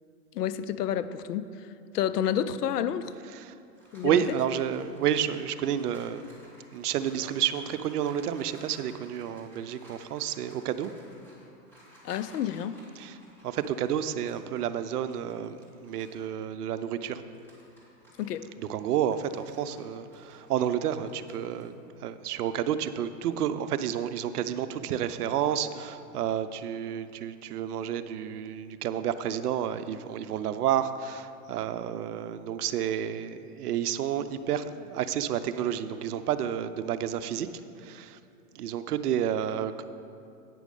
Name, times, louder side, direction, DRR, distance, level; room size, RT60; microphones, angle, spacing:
voice 1, 0.3-1.7 1.9-3.1 3.9-4.2 12.0-12.8 18.2-18.5, left 9 dB, 80° left, 14 dB, 0.6 m, -30 dB
sound 1, 3.3-16.3 16.7-21.6, equal, 5° left, 2.1 m, -56 dB
voice 2, 4.0-6.3 6.7-10.9 13.0-13.2 13.4-17.2 18.6-37.5 37.8-38.2 38.5-39.8, right 9 dB, 75° right, 12 dB, 0.6 m, -30 dB
9.2 x 6.2 x 5.3 m, 2.6 s
hypercardioid pair, 135°, 46 cm